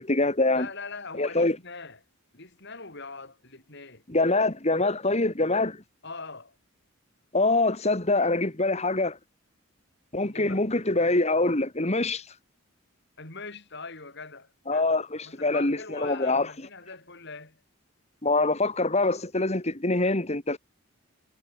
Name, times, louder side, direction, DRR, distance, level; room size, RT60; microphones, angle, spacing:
voice 1, 0.0-0.7 1.2-1.6 4.1-5.8 7.3-9.2 10.1-12.2 14.7-16.5 18.2-20.6, left 2 dB, 30° left, 2.1 m, -24 dB
voice 2, 0.5-2.0 2.3-4.0 6.0-6.5 10.3-10.6 13.2-14.9 15.2-17.6, left 4 dB, 55° left, 6.1 m, -42 dB
head